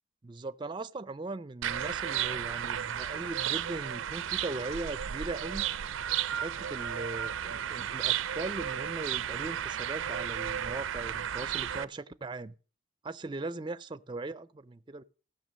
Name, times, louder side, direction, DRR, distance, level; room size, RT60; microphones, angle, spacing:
voice 1, 0.2-5.7 6.3-12.6 13.0-15.0, right 2 dB, 25° right, 0.4 m, -39 dB
sound 1, 1.6-11.8, right 10 dB, 85° right, 0.5 m, -33 dB
15.5 x 5.9 x 6.3 m
head